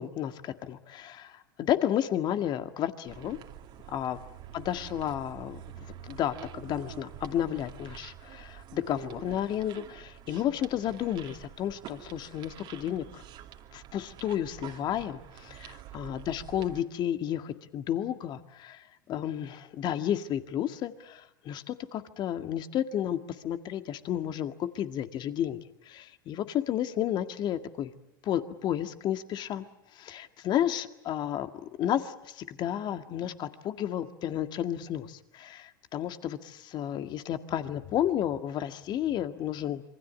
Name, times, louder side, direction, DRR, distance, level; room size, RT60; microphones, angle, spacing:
voice 1, 0.0-3.4 3.9-4.2 4.5-5.6 6.0-13.2 13.7-27.9 28.2-29.7 29.9-39.8, left 10 dB, 40° left, 9 dB, 1.9 m, -32 dB
sound 1, 3.1-16.8, right 11 dB, 45° right, 2.6 m, -47 dB
27.0 x 23.5 x 8.4 m, 0.82 s
hypercardioid pair, 95°, 11 cm